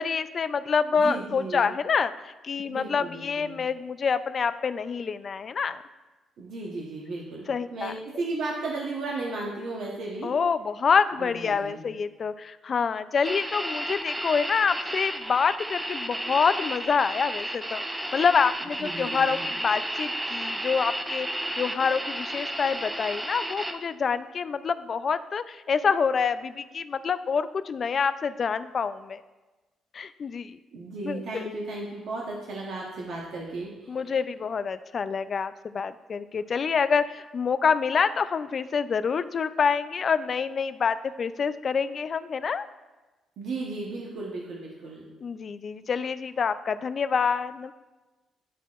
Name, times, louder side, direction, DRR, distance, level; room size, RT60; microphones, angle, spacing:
voice 1, 0.0-5.8 7.5-8.0 10.2-29.2 29.9-30.6 31.0-31.4 33.9-42.7 45.2-47.7, left 6 dB, 45° left, 13 dB, 0.3 m, -27 dB
voice 2, 1.0-1.7 2.7-3.6 6.4-10.3 11.2-11.8 18.6-19.4 30.7-34.0 43.4-45.1, right 3 dB, 75° right, -3 dB, 0.9 m, -35 dB
sound 1, 13.2-23.7, right 1 dB, 10° right, 0.6 m, -32 dB
11.0 x 4.0 x 2.4 m, 1.2 s
cardioid pair, 90°, 0 cm